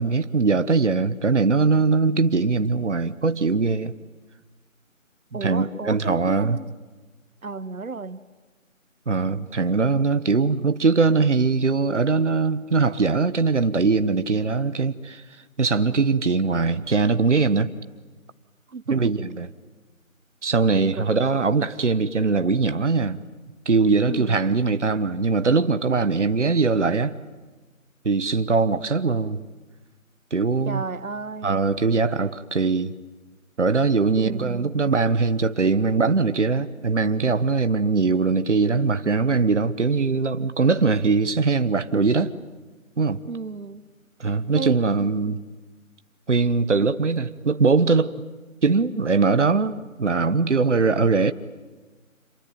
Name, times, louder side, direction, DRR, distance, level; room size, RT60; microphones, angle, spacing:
voice 1, 0.0-3.9 5.3-6.6 9.1-15.2 15.6-17.7 18.9-19.5 20.4-23.2 23.6-27.2 28.0-29.4 30.3-30.8 31.4-32.9 33.6-42.3 43.0-43.2 44.2-45.4 46.3-48.1 48.6-51.3, right 4 dB, 55° right, 1.3 m, -21 dB
voice 2, 5.3-6.7 7.4-8.2 18.7-19.1 20.7-21.0 24.0-24.4 30.6-31.7 34.2-34.8 43.3-43.8 44.5-44.8 45.3-45.4, right 4 dB, 75° right, 1.2 m, -33 dB
27.5 x 24.0 x 9.2 m
figure-of-eight pair, 170°, 42 cm